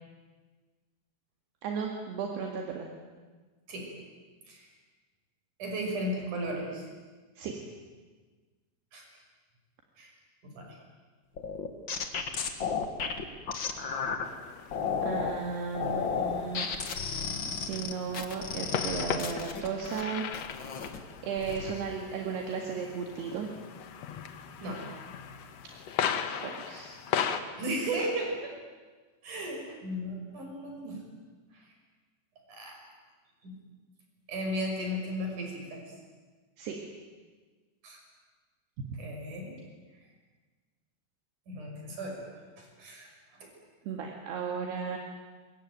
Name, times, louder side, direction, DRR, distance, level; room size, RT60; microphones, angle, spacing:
voice 1, 1.6-2.9 7.4-7.5 15.0-16.7 17.6-20.3 21.2-23.5 26.4-27.0 36.6-36.8 38.8-38.9 43.9-45.0, right 6 dB, 70° right, 1 dB, 4.1 m, -35 dB
voice 2, 5.6-6.9 8.9-9.0 10.0-10.1 10.4-10.8 24.6-24.8 27.6-28.5 29.2-31.0 31.5-31.6 32.5-32.8 33.4-33.5 34.3-35.8 37.8-38.0 39.0-39.5 41.5-42.3 42.6-43.1, equal, 45° right, 1 dB, 7.3 m, -35 dB
sound 1, 11.4-14.2 14.7-15.4 15.7-20.0 20.3-21.0 21.4-21.7, left 6 dB, 55° left, 1.3 m, -33 dB
sound 2, 14.2-27.4, left 8 dB, 75° left, 1.5 m, -38 dB
26.5 x 22.0 x 9.3 m, 1.4 s
omnidirectional pair, 5.0 m